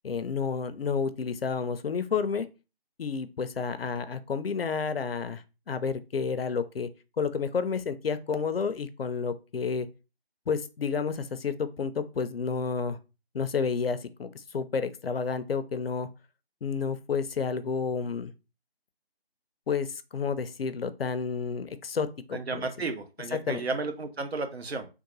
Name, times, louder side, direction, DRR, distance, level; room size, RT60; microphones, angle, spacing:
voice 1, 0.0-2.5 3.0-6.9 7.2-9.9 10.5-13.0 13.3-16.1 16.6-18.3 19.7-22.7 23.3-23.7, left 5 dB, 70° left, 12 dB, 0.5 m, -30 dB
voice 2, 22.3-24.9, right 3 dB, 80° right, 7 dB, 0.8 m, -33 dB
3.7 x 2.1 x 3.0 m, 0.30 s
figure-of-eight pair, 160°, 31 cm